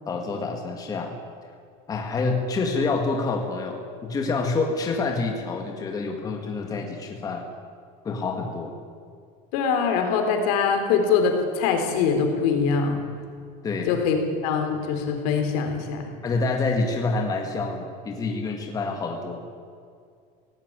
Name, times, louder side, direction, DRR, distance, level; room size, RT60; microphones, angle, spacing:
voice 1, 0.1-1.1 1.9-7.4 8.0-8.7 13.6-13.9 16.2-19.4, left 3 dB, 20° left, 2 dB, 1.8 m, -27 dB
voice 2, 9.5-13.0 13.9-16.0, left 5 dB, 75° left, 4 dB, 3.9 m, -23 dB
17.0 x 16.5 x 9.8 m, 2.2 s
cardioid pair, 175°, 19 cm